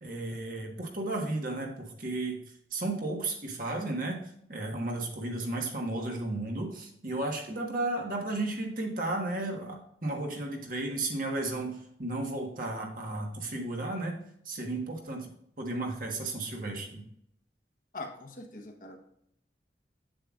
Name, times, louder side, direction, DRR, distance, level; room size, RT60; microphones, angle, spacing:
voice 1, 0.0-2.4 2.7-4.2 4.5-14.2 14.4-17.0, right 2 dB, 50° right, 1 dB, 1.3 m, -34 dB
voice 2, 17.9-19.0, left 2 dB, 50° left, 2 dB, 1.1 m, -42 dB
7.6 x 7.6 x 2.4 m, 0.71 s
head